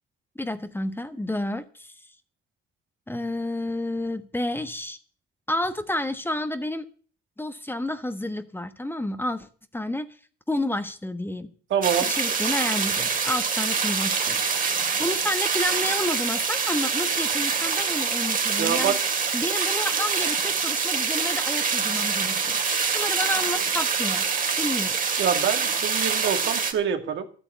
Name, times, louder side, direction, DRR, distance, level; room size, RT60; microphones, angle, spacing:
voice 1, 0.3-1.9 3.1-5.0 5.5-6.9 7.4-10.1 10.5-11.5 12.1-14.4 15.0-18.9 19.3-22.6 22.9-24.3 24.6-25.0, left 1 dB, 10° left, 10 dB, 1.3 m, -30 dB
voice 2, 11.7-12.1 18.6-19.0 25.2-27.3, right 8 dB, 75° right, 6 dB, 2.2 m, -25 dB
sound 1, 11.8-26.7, right 5 dB, 45° right, 2.4 m, -25 dB
12.5 x 8.7 x 8.3 m, 0.42 s
cardioid pair, 90°, 20 cm